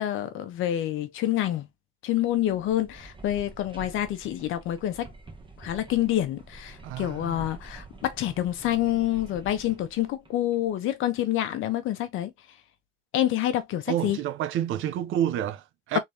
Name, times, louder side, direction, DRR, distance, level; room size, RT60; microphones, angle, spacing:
voice 1, 0.0-1.7 2.0-5.1 5.6-12.3 13.1-14.2, left 12 dB, 90° left, 0.9 m, -27 dB
sound 1, 2.2-10.7, right 3 dB, 25° right, 1.1 m, -47 dB
voice 2, 6.8-7.5 13.9-16.0, right 11 dB, 85° right, 0.6 m, -29 dB
3.8 x 3.4 x 2.7 m
cardioid pair, 90°, 20 cm